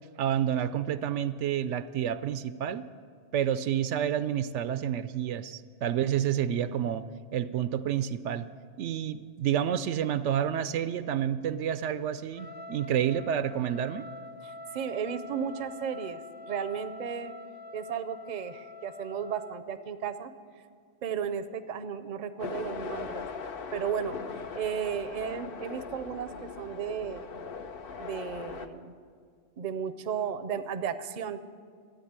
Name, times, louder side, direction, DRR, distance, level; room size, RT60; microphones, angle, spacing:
voice 1, 0.2-2.9 3.3-8.5 8.8-14.1, right 9 dB, 80° right, 14 dB, 0.9 m, -29 dB
Trumpet, 12.3-19.6, left 3 dB, 25° left, 0.7 m, -45 dB
voice 2, 14.4-17.3 17.7-20.3 21.0-23.3 23.7-24.2 24.5-27.4 28.0-28.9 29.6-31.4, right 7 dB, 45° right, 11 dB, 0.6 m, -34 dB
sound 1, 22.4-28.7, left 5 dB, 55° left, 0.9 m, -40 dB
13.0 x 9.0 x 8.8 m, 2.1 s
omnidirectional pair, 1.2 m